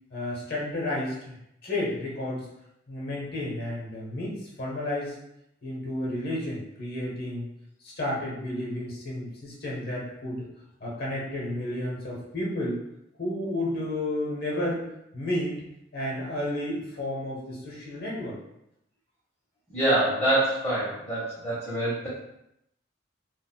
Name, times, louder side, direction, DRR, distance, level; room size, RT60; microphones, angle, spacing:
voice 1, 0.1-1.3 1.6-2.5 2.9-5.1 5.6-7.5 7.8-10.5 10.8-12.8 13.2-14.9 15.1-15.6 15.9-18.4, left 1 dB, 55° left, -3 dB, 1.0 m, -31 dB
voice 2, 19.7-22.1, right 1 dB, 10° left, -10 dB, 0.8 m, -25 dB
4.0 x 2.3 x 2.2 m, 0.81 s
head